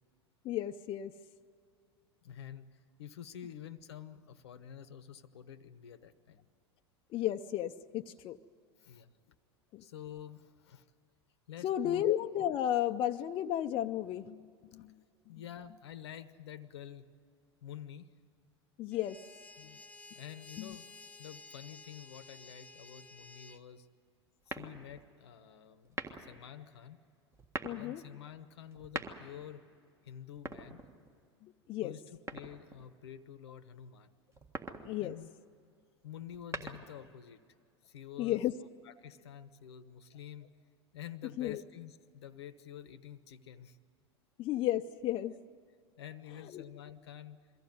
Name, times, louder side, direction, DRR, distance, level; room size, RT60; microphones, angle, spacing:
voice 1, 0.4-1.1 7.1-8.4 9.7-9.8 11.6-14.9 18.8-19.2 20.6-20.8 27.6-28.0 31.4-31.9 34.8-35.2 38.2-38.5 41.4-41.6 44.4-45.4 46.5-46.6, left 12 dB, 40° left, 6 dB, 0.6 m, -33 dB
voice 2, 2.2-6.5 8.8-9.3 9.8-10.9 11.5-12.0 15.3-17.1 17.6-18.1 19.6-19.8 20.1-20.9 21.2-23.9 24.5-27.0 27.8-29.6 30.0-30.8 31.8-32.0 32.3-34.2 35.0-35.3 36.0-37.4 37.8-38.4 38.8-40.5 40.9-43.8 46.0-47.4, left 10 dB, 75° left, 14 dB, 0.9 m, -49 dB
sound 1, 18.9-23.6, left 3 dB, 10° left, 1.0 m, -53 dB
sound 2, 24.5-25.1 25.8-26.4 27.3-27.9 28.7-29.5 30.3-31.2 32.3-32.9 34.3-34.9 36.2-37.1, right 2 dB, 20° right, 1.7 m, -42 dB
23.0 x 15.0 x 9.4 m, 2.3 s
hypercardioid pair, 85°, 14 cm